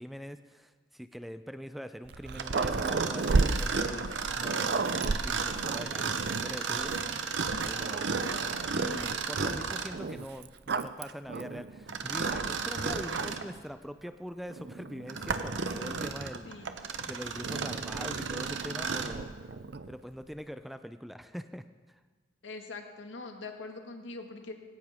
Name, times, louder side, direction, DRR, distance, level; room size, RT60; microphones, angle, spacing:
voice 1, 0.0-4.1 4.4-7.2 7.5-19.6 19.9-22.0, equal, ahead, 10 dB, 0.4 m, -43 dB
Growling, 2.0-6.6 7.3-7.4 7.8-8.9 9.9-12.7 13.1-13.6 14.5-16.3 17.4-20.0, right 3 dB, 60° right, 0.5 m, -34 dB
Mechanisms, 2.4-10.0 11.9-13.5 14.1-14.2 14.8-19.2, right 5 dB, 80° right, 1.0 m, -33 dB
voice 2, 22.4-24.5, left 3 dB, 85° left, 4 dB, 1.8 m, -43 dB
18.0 x 17.0 x 3.6 m, 1.3 s
head